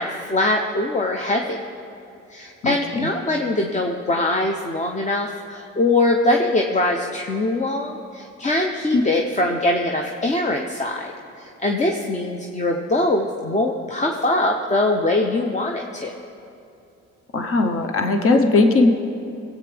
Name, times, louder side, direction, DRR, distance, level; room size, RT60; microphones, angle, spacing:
voice 1, 0.0-1.6 2.3-16.1, left 2 dB, 25° left, 2 dB, 0.8 m, -22 dB
voice 2, 17.3-18.9, left 3 dB, 45° left, 5 dB, 1.1 m, -18 dB
20.0 x 8.4 x 3.5 m, 2.7 s
cardioid pair, 90°, 30 cm